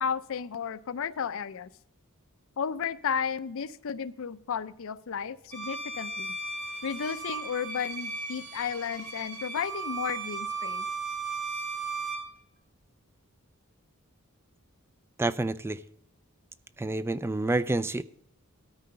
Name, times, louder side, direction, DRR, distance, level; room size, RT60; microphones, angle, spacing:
voice 1, 0.0-1.7 2.6-6.3 6.8-10.9, left 7 dB, 65° left, 15 dB, 0.5 m, -33 dB
Bowed string instrument, 5.5-12.3, right 3 dB, 90° right, 2.5 m, -36 dB
voice 2, 15.2-15.8 16.8-18.0, right 2 dB, 10° right, 15 dB, 0.3 m, -28 dB
13.0 x 4.7 x 6.7 m, 0.75 s
head